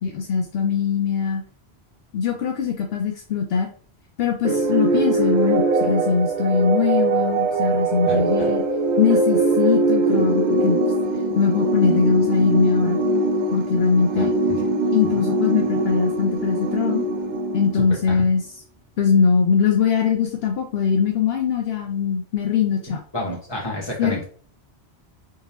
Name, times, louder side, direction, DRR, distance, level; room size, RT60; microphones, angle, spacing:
voice 1, 0.0-1.4 2.1-3.7 4.2-8.6 9.0-10.8 11.3-13.0 13.5-14.3 14.9-17.0 17.5-18.4 19.0-23.0 24.0-24.2, left 6 dB, 70° left, 2 dB, 0.8 m, -21 dB
sound 1, 4.4-18.2, right 2 dB, 55° right, 0.6 m, -22 dB
voice 2, 8.0-8.5 14.1-14.3 18.1-18.2 22.9-24.2, left 1 dB, 25° left, -3 dB, 1.4 m, -30 dB
3.6 x 2.9 x 2.9 m, 0.43 s
omnidirectional pair, 1.1 m